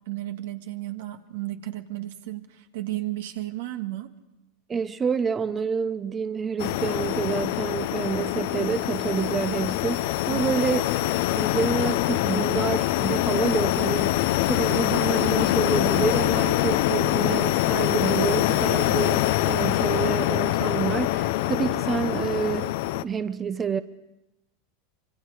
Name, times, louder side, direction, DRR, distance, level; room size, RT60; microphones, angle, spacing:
voice 1, 0.1-4.1 10.3-10.6, right 15 dB, 80° right, 1.7 m, -33 dB
voice 2, 4.7-14.2 14.5-23.8, right 6 dB, 25° right, 0.7 m, -28 dB
sound 1, 6.6-23.0, left 15 dB, 70° left, 0.7 m, -24 dB
26.0 x 23.5 x 4.9 m
supercardioid pair, 125°, 0 cm